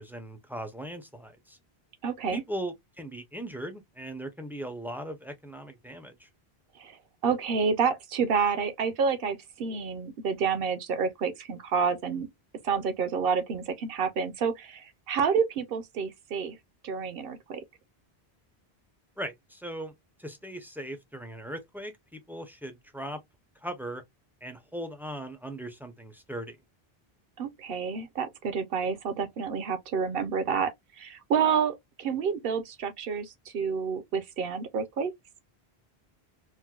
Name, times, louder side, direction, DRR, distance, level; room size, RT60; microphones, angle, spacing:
voice 1, 0.0-1.6 2.3-6.3 19.2-23.2 23.6-24.0 24.4-26.6, right 1 dB, 5° right, 0.4 m, -39 dB
voice 2, 2.0-2.4 6.8-7.0 7.2-12.3 12.6-16.6 16.8-17.6 27.4-35.1, right 6 dB, 70° right, 0.8 m, -29 dB
4.4 x 2.2 x 2.2 m
omnidirectional pair, 1.0 m